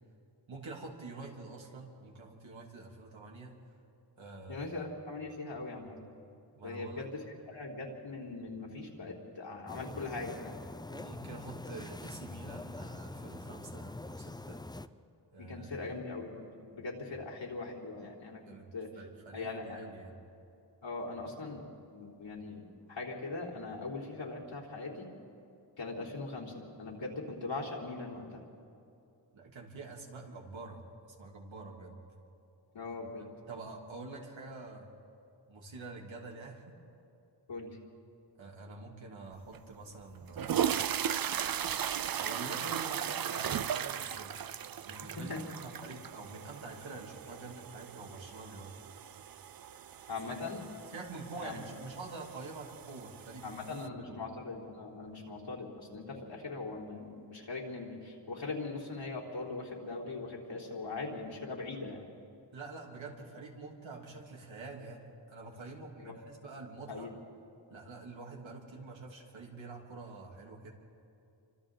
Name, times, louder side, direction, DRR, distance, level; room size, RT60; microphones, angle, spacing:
voice 1, 0.5-3.5 4.2-4.6 6.5-7.1 10.9-14.6 15.3-15.7 18.4-18.7 19.0-20.1 29.3-30.9 31.2-32.0 33.5-34.9 35.5-36.8 38.4-40.5 42.1-44.5 44.8-45.3 45.6-48.8 50.2-50.4 50.9-54.2 62.5-67.1 67.7-70.7, right 3 dB, 85° right, -1 dB, 3.2 m, -46 dB
voice 2, 4.5-6.0 6.6-10.6 15.4-16.5 16.7-18.4 18.7-19.0 19.3-19.9 20.8-25.1 25.8-26.5 26.8-28.4 32.7-33.3 37.5-37.8 45.3-45.4 50.1-50.7 51.4-51.6 53.4-62.1 66.0-66.1 66.9-67.1, left 3 dB, 80° left, -3 dB, 3.9 m, -41 dB
sound 1, 9.7-14.9, left 2 dB, 10° left, 0.4 m, -44 dB
sound 2, 39.5-39.6 40.2-53.9, right 9 dB, 50° right, 0.6 m, -37 dB
29.5 x 25.5 x 3.9 m, 2.7 s
wide cardioid pair, 90°, 45 cm